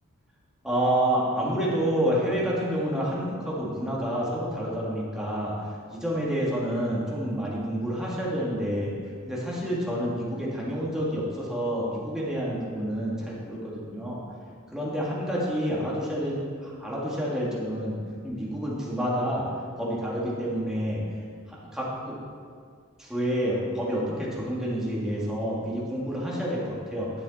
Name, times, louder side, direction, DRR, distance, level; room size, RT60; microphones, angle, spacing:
voice 1, 0.6-5.5 5.9-8.9 9.2-14.2 14.7-18.0 18.2-19.5 19.8-21.0 21.5-22.1 23.0-27.1, equal, 5° right, -6 dB, 2.0 m, -28 dB
11.0 x 7.6 x 4.2 m, 2.1 s
head